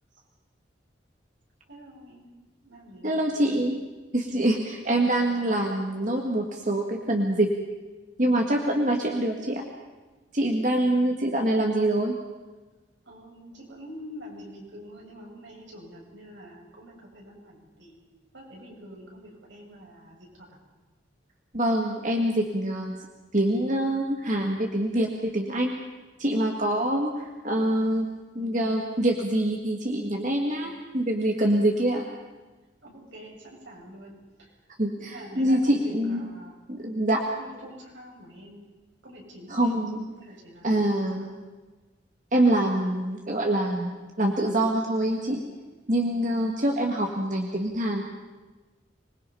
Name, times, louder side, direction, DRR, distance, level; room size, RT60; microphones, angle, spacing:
voice 1, 1.7-2.4 2.6-3.3 10.8-11.0 13.1-18.0 18.3-20.6 32.8-34.5 35.0-36.6 37.3-38.7 39.0-41.5, equal, 80° right, -2 dB, 7.3 m, -46 dB
voice 2, 3.0-3.8 4.1-7.5 8.2-9.6 10.3-12.2 21.5-23.0 23.3-25.8 26.2-28.1 28.4-32.1 34.8-36.3 36.7-37.2 39.5-40.0 40.6-41.3 42.3-45.4 45.9-48.0, right 1 dB, 40° right, 1 dB, 1.8 m, -25 dB
25.5 x 21.0 x 5.6 m, 1.2 s
head